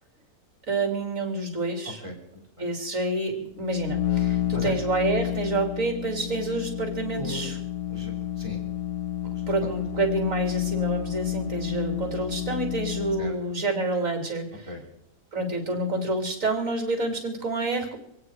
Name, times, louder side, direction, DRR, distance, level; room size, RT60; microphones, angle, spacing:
voice 1, 0.7-2.0 2.6-7.6 9.5-14.7 15.3-18.0, right 2 dB, 50° right, 3 dB, 3.6 m, -28 dB
voice 2, 1.8-2.7 4.5-4.7 7.1-7.5 7.9-8.6 9.2-9.4 13.2-13.3 14.7-14.8, left 1 dB, 20° right, 1 dB, 3.1 m, -38 dB
sound 1, 3.5-13.4, left 11 dB, 60° left, 1.1 m, -30 dB
26.0 x 9.7 x 4.9 m, 0.80 s
omnidirectional pair, 1.8 m